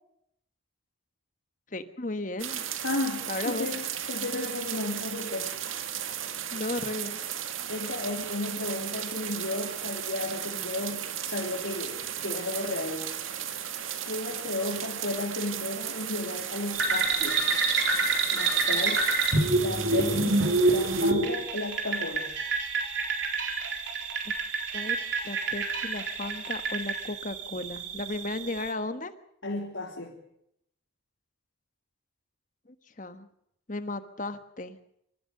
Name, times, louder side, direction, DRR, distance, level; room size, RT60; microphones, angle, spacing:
voice 1, 1.7-2.6 3.3-3.7 6.5-7.2 24.7-25.0 25.2-29.1 33.0-33.3 33.7-34.8, left 2 dB, 40° left, 10 dB, 1.3 m, -34 dB
sound 1, 2.4-21.1, right 9 dB, 85° right, 1.9 m, -35 dB
voice 2, 2.8-5.5 7.7-13.1 14.0-17.4 18.3-19.0 19.6-22.3 29.4-30.2, left 2 dB, 80° left, -1 dB, 3.2 m, -34 dB
sound 2, 16.7-28.7, right 8 dB, 40° right, 3.1 m, -41 dB
sound 3, 16.8-27.0, right 3 dB, 65° right, 4.2 m, -26 dB
26.5 x 14.5 x 6.7 m, 0.76 s
head